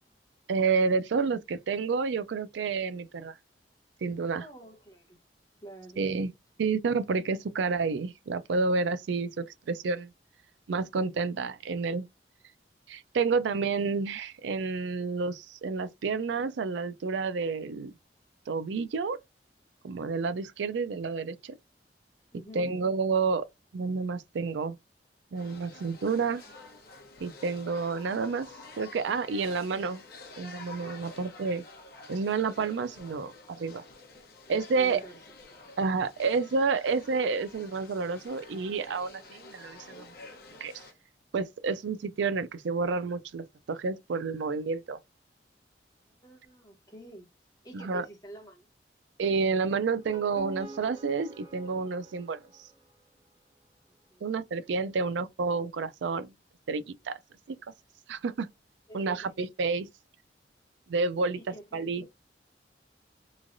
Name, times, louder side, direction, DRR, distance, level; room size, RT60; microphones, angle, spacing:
voice 1, 0.5-3.4 4.0-4.5 6.0-6.3 6.6-10.1 10.7-12.1 12.9-17.9 18.5-19.2 19.8-21.6 22.5-23.4 23.7-24.8 25.3-26.4 27.2-28.5 28.7-30.0 30.4-31.6 32.1-33.8 34.5-35.0 35.8-40.1 40.6-40.7 41.3-45.0 47.7-48.1 49.2-52.4 54.2-56.3 56.7-57.2 57.5-57.6 58.1-58.5 58.9-59.9 60.9-61.4 61.7-62.2, right 4 dB, 85° right, 0.4 m, -29 dB
voice 2, 4.4-5.2 5.6-6.3 22.3-22.7 34.7-35.2 35.5-35.6 46.1-47.3 47.6-48.7 54.1-54.2 58.9-59.3 61.3-62.2, right 1 dB, 20° left, 1.0 m, -48 dB
sound 1, 25.3-40.9, left 3 dB, 55° left, 0.8 m, -49 dB
sound 2, 49.9-53.1, right 1 dB, 20° right, 0.8 m, -47 dB
3.1 x 2.3 x 2.5 m
head